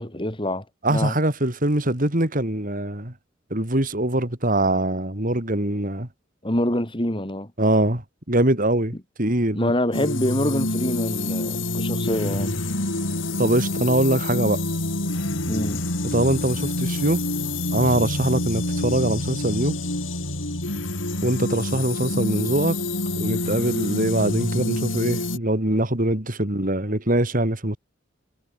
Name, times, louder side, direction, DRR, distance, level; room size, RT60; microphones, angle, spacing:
voice 1, 0.0-1.1 6.4-7.5 9.5-12.5 15.5-15.8, left 1 dB, 25° left, 5.0 m, -26 dB
voice 2, 0.8-3.1 3.5-6.1 7.6-8.0 8.3-9.7 13.4-14.6 16.0-17.2 17.7-19.8 21.2-22.8 23.1-27.8, right 1 dB, 45° right, 3.8 m, -23 dB
sound 1, 9.9-25.4, left 2 dB, 75° left, 7.3 m, -27 dB
head